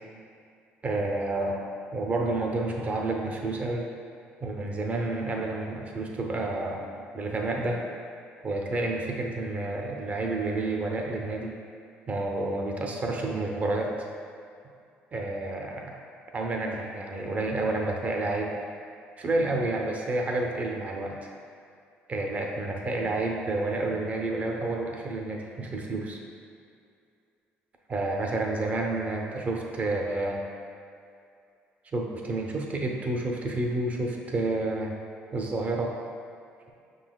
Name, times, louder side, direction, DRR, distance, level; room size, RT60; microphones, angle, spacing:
voice 1, 0.8-1.6 1.9-3.8 4.4-7.8 8.4-11.6 12.1-13.9 15.1-16.0 16.3-18.6 19.2-21.2 22.1-26.2 27.9-30.4 31.9-34.9 35.3-35.9, right 2 dB, 35° right, 1 dB, 0.7 m, -29 dB
5.8 x 3.9 x 2.3 m, 2.5 s
cardioid pair, 105°, 4 cm